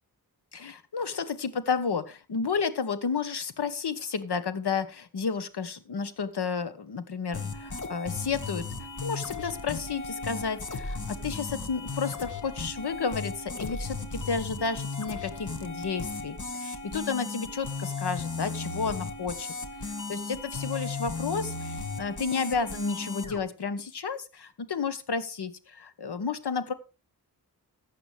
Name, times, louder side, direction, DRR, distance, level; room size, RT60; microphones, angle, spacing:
voice 1, 0.5-19.5 20.1-26.7, left 5 dB, 85° left, 11 dB, 1.3 m, -32 dB
sound 1, 7.3-23.4, left 3 dB, 50° left, 1.8 m, -36 dB
15.0 x 8.9 x 3.4 m, 0.31 s
cardioid pair, 50°, 39 cm